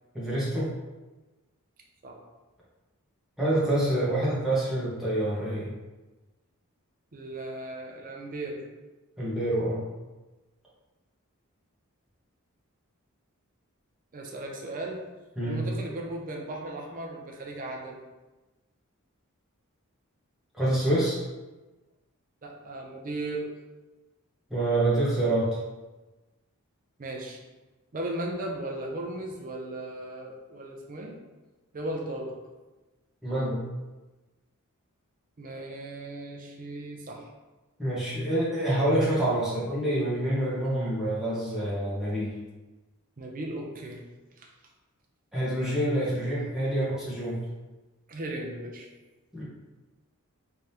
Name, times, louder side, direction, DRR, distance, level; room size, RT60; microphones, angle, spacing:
voice 1, 0.1-0.7 3.4-5.7 9.2-9.8 15.4-15.6 20.5-21.2 24.5-25.5 33.2-33.6 37.8-42.3 45.3-47.4 49.3-49.4, right 1 dB, ahead, -9 dB, 1.3 m, -27 dB
voice 2, 7.1-8.7 14.1-15.0 15.4-18.0 22.4-23.5 27.0-27.4 27.9-31.1 31.7-32.3 35.4-37.3 43.2-44.0 44.4-44.5 46.1-46.2 48.1-48.9, right 1 dB, 40° right, 0 dB, 0.5 m, -36 dB
3.7 x 3.3 x 2.8 m, 1.2 s
head